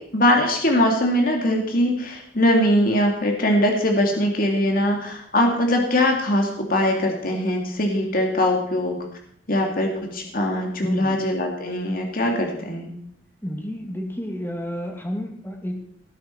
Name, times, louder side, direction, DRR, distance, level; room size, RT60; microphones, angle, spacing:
voice 1, 0.0-9.0 9.5-12.9, left 1 dB, 55° left, 2 dB, 2.4 m, -21 dB
voice 2, 10.8-11.2 13.4-15.8, equal, 15° left, 1 dB, 2.3 m, -30 dB
18.0 x 9.6 x 4.5 m, 0.68 s
head